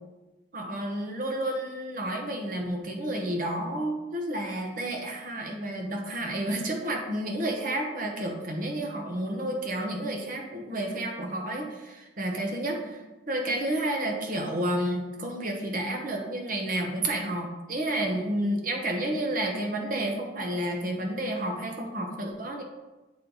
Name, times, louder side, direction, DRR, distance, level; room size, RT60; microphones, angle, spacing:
voice 1, 0.5-22.6, right 1 dB, 45° right, 2 dB, 0.9 m, -30 dB
8.6 x 3.2 x 3.9 m, 1.1 s
head